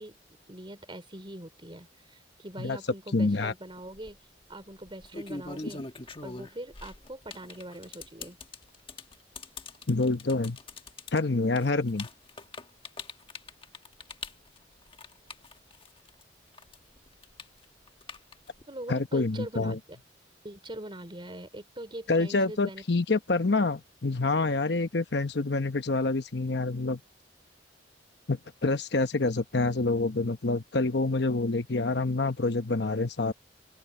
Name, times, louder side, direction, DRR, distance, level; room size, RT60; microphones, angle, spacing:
voice 1, 0.0-4.2 4.5-5.9 6.2-8.4 18.7-20.0 20.4-22.8, right 1 dB, 25° right, 3.1 m, -42 dB
voice 2, 3.1-3.5 9.9-10.6 11.1-12.1 18.9-19.8 22.1-27.0 28.3-33.3, left 3 dB, 60° left, 1.0 m, -27 dB
sound 1, 3.8-4.1 4.9-16.2 16.5-18.6, left 3 dB, 30° left, 1.3 m, -42 dB
open air
head